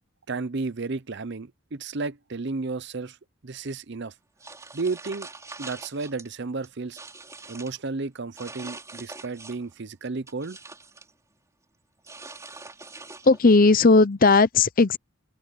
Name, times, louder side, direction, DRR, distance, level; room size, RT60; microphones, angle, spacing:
voice 1, 0.3-3.2 3.4-4.1 4.7-5.3 5.6-7.0 7.5-10.6, right 3 dB, 50° right, 0.7 m, -32 dB
sound 1, 4.4-6.3 6.6-7.8 8.4-9.7 10.0-11.1 12.0-13.6, right 3 dB, 15° right, 5.0 m, -43 dB
voice 2, 13.2-15.0, left 3 dB, 40° left, 0.7 m, -17 dB
open air
head